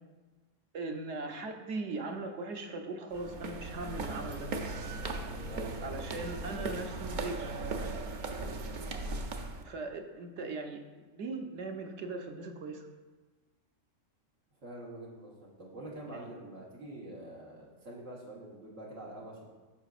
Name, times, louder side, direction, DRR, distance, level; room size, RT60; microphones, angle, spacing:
voice 1, 0.7-4.5 5.8-7.5 9.6-10.8 11.1-12.9 15.8-16.3, right 3 dB, 70° right, 4 dB, 1.1 m, -39 dB
sound 1, 3.1-9.6, right 2 dB, 50° right, 0.6 m, -38 dB
voice 2, 14.6-19.5, right 1 dB, 85° right, -4 dB, 1.7 m, -46 dB
13.5 x 4.9 x 2.4 m, 1.3 s
omnidirectional pair, 1.3 m